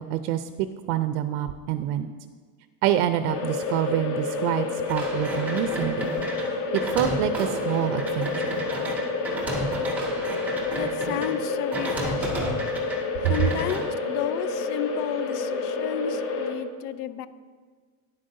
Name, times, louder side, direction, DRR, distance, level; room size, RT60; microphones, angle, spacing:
voice 1, 0.0-2.1 2.8-6.2 6.7-8.5, right 11 dB, 80° right, 10 dB, 0.5 m, -27 dB
sound 1, 3.3-16.6, left 4 dB, 30° left, 0.6 m, -29 dB
sound 2, 4.9-11.3 11.7-13.0 13.2-13.8, right 2 dB, 5° right, 0.3 m, -33 dB
voice 2, 10.7-12.7 13.3-17.3, left 9 dB, 80° left, 14 dB, 0.6 m, -32 dB
9.8 x 7.5 x 2.6 m, 1.5 s
cardioid pair, 165°, 45 cm